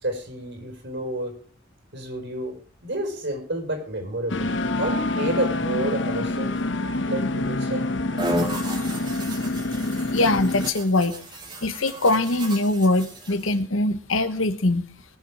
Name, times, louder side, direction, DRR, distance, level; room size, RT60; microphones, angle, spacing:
voice 1, 0.0-1.4 1.9-2.6 2.8-4.5 4.8-6.5 7.1-7.8, right 1 dB, 60° right, 5 dB, 4.5 m, -30 dB
sound 1, 4.3-10.7, left 2 dB, 60° left, 1.1 m, -26 dB
sound 2, 8.2-13.6, right 1 dB, 25° right, 2.5 m, -34 dB
voice 2, 10.1-11.2 11.6-14.8, left 2 dB, 80° left, 11 dB, 1.3 m, -22 dB
22.0 x 7.3 x 4.7 m, 0.42 s
head